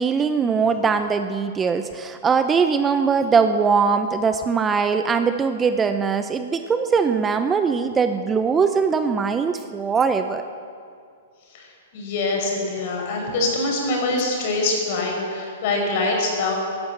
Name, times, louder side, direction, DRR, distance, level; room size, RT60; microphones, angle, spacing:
voice 1, 0.0-10.4, right 5 dB, 15° right, 8 dB, 0.7 m, -21 dB
voice 2, 11.9-16.5, left 2 dB, 55° left, 0 dB, 5.1 m, -24 dB
16.0 x 11.5 x 7.8 m, 2.3 s
hypercardioid pair, 130°, 0 cm